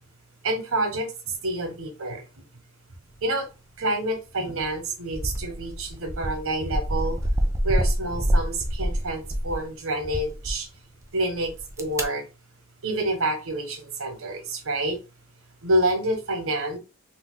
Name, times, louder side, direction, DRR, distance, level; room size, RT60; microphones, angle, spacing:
voice 1, 0.4-2.2 3.2-3.5 3.8-7.2 7.6-10.7 11.1-11.5 11.8-12.2 12.8-15.0 15.6-16.8, right 1 dB, 75° right, 5 dB, 0.9 m, -28 dB
sound 1, 4.5-4.8 5.1-9.7 10.0-10.6 11.4-12.0, equal, 15° right, 0.3 m, -27 dB
2.7 x 2.0 x 3.7 m, 0.30 s
head